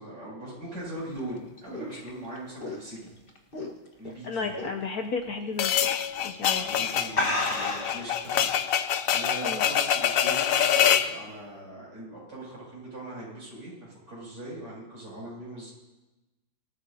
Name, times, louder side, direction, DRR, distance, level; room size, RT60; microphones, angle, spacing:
voice 1, 0.0-3.1 4.0-4.5 6.5-15.7, right 1 dB, 60° right, -5 dB, 7.7 m, -40 dB
sound 1, 1.0-4.1 4.5-4.8 5.2-5.3 6.1-6.4 6.7-6.8 7.1-8.1, left 2 dB, 30° left, 1.5 m, -31 dB
voice 2, 4.2-5.9 6.2-6.7 9.4-9.6, left 4 dB, 60° left, 5 dB, 1.1 m, -33 dB
sound 2, 5.6-11.1, left 9 dB, 75° left, 0.7 m, -25 dB
24.5 x 14.0 x 2.8 m, 1.1 s
omnidirectional pair, 2.2 m